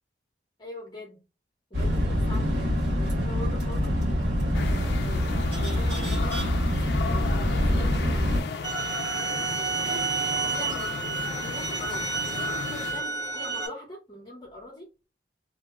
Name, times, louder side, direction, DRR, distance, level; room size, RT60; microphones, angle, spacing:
voice 1, 0.6-1.2 1.7-4.0 4.6-6.4 7.0-7.3 7.7-8.5 9.6-10.1 10.5-14.9, left 1 dB, 25° left, 0.8 m, -43 dB
sound 1, 1.7-8.4, equal, 85° right, 1.4 m, -25 dB
sound 2, 4.5-13.1, left 5 dB, 65° left, 0.4 m, -35 dB
sound 3, 8.6-13.7, right 4 dB, 25° right, 0.8 m, -30 dB
2.8 x 2.1 x 3.5 m
head